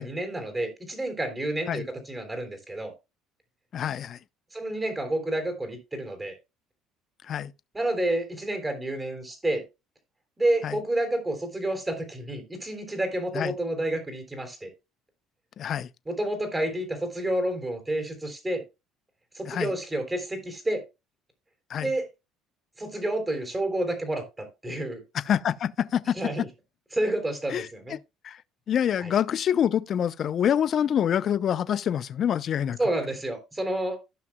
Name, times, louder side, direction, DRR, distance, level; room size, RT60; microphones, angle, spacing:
voice 1, 0.0-2.9 4.5-6.3 7.7-9.6 10.4-14.7 16.1-18.6 19.3-20.8 21.8-22.1 22.8-25.0 26.2-26.5 26.9-28.0 29.0-29.1 32.8-34.0, right 1 dB, 15° right, 3.4 m, -29 dB
voice 2, 3.7-4.2 7.3-7.5 10.6-10.8 13.3-13.6 15.6-15.9 19.5-19.7 21.7-21.9 25.1-26.1 27.5-28.0 28.2-28.4 28.7-32.8, left 9 dB, 50° left, 0.6 m, -26 dB
15.5 x 5.9 x 2.3 m
supercardioid pair, 100°, 0 cm